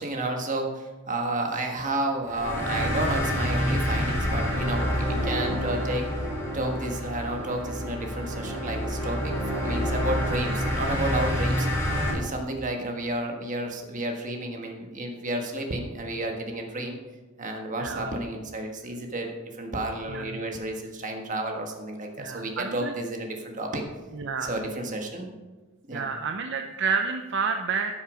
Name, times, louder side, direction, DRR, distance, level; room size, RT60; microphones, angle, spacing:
voice 1, 0.0-6.1 6.5-11.7 12.1-17.0 17.4-23.8 24.4-25.3 25.9-26.0, right 1 dB, 35° right, 3 dB, 1.5 m, -31 dB
sound 1, 2.3-12.1, equal, 10° left, 3.6 m, -28 dB
voice 2, 17.8-18.1 20.1-20.3 22.2-22.9 24.1-24.6 25.9-28.0, right 5 dB, 55° right, 5 dB, 0.6 m, -29 dB
13.0 x 7.1 x 5.0 m, 1.3 s
head